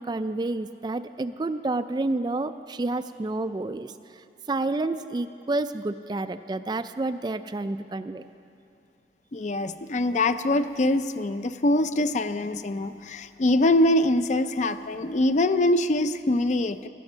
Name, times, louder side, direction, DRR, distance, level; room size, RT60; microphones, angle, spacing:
voice 1, 0.0-8.2, right 2 dB, 25° right, 11 dB, 0.3 m, -29 dB
voice 2, 9.3-16.9, left 1 dB, 40° left, 11 dB, 0.5 m, -23 dB
17.5 x 12.5 x 6.2 m, 2.6 s
head